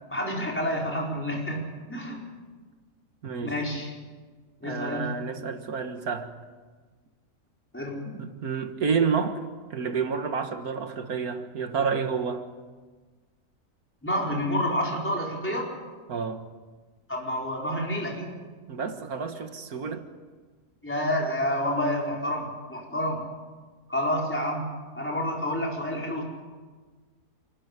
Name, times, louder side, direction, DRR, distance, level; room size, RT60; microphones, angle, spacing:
voice 1, 0.1-2.2 3.4-3.9 4.6-5.1 7.7-8.0 14.0-15.7 17.1-18.3 20.8-23.2 23.9-26.2, equal, 5° left, -2 dB, 4.6 m, -29 dB
voice 2, 3.2-3.6 4.6-6.3 8.1-9.4 9.7-12.5 16.1-16.5 18.7-20.1, right 5 dB, 75° right, 7 dB, 2.0 m, -29 dB
28.5 x 12.5 x 9.9 m, 1.4 s
omnidirectional pair, 1.6 m